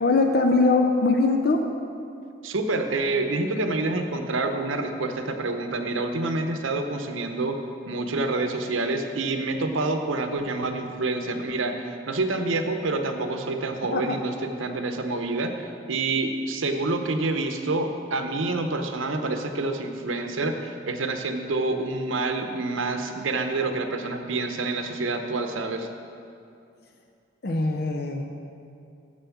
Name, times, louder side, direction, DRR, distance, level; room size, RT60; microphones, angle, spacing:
voice 1, 0.0-1.6 13.9-14.2 27.4-28.2, left 3 dB, 50° left, 4 dB, 0.5 m, -21 dB
voice 2, 2.4-7.6 7.9-25.9, right 2 dB, 85° right, 6 dB, 0.7 m, -27 dB
7.0 x 6.8 x 7.0 m, 2.5 s
head